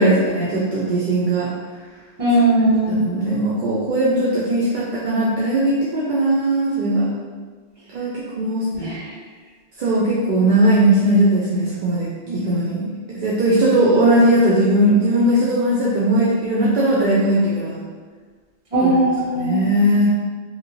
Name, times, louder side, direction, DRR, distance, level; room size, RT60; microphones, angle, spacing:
voice 1, 0.0-1.5 2.9-7.1 7.9-8.6 9.8-17.8 18.8-19.0 19.3-20.1, right 1 dB, 60° right, -6 dB, 0.6 m, -18 dB
voice 2, 2.2-3.0 8.8-9.1 18.7-19.6, right 1 dB, 35° right, -9 dB, 1.1 m, -18 dB
2.9 x 2.7 x 2.6 m, 1.5 s
omnidirectional pair, 1.1 m